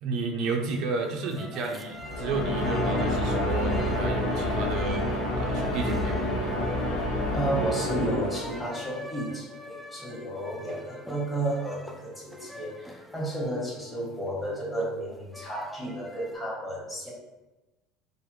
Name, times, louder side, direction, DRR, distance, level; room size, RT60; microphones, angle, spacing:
voice 1, 0.0-5.0 5.3-6.3, right 4 dB, 60° right, 2 dB, 0.5 m, -32 dB
sound 1, 0.6-16.4, left 1 dB, ahead, 0.3 m, -44 dB
sound 2, 2.0-8.9, left 1 dB, 70° left, 1.5 m, -28 dB
voice 2, 7.3-17.1, right 1 dB, 15° left, -5 dB, 1.2 m, -32 dB
4.7 x 2.1 x 3.1 m, 1.1 s
supercardioid pair, 125°, 0 cm